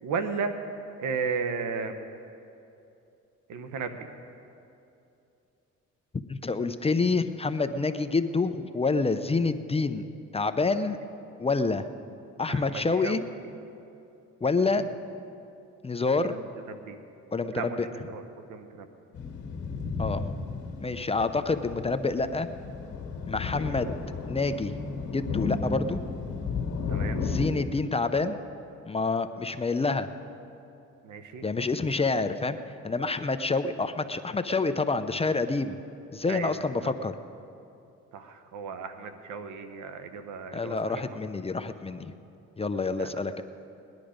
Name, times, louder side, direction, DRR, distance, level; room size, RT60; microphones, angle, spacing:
voice 1, 0.0-0.6 1.0-2.0 3.5-4.0 12.5-13.2 14.7-14.9 16.2-16.4 16.7-17.0 17.5-18.2 18.5-18.9 23.6-23.7 26.9-27.2 31.0-31.4 36.3-36.9 38.1-41.2 43.0-43.2, right 5 dB, 80° right, 8 dB, 1.1 m, -35 dB
voice 2, 6.3-10.0 10.3-11.0 11.4-11.9 12.4-13.2 14.4-14.9 15.8-16.3 17.3-17.9 20.0-22.5 23.3-23.9 24.3-24.8 25.1-26.0 27.2-28.4 28.9-30.1 31.4-32.6 32.8-35.7 36.1-37.1 40.5-42.1 42.6-43.4, left 3 dB, 20° left, 10 dB, 0.6 m, -27 dB
sound 1, 19.1-27.5, left 4 dB, 70° left, 1.8 m, -33 dB
19.5 x 10.5 x 5.1 m, 2.8 s
cardioid pair, 90°, 30 cm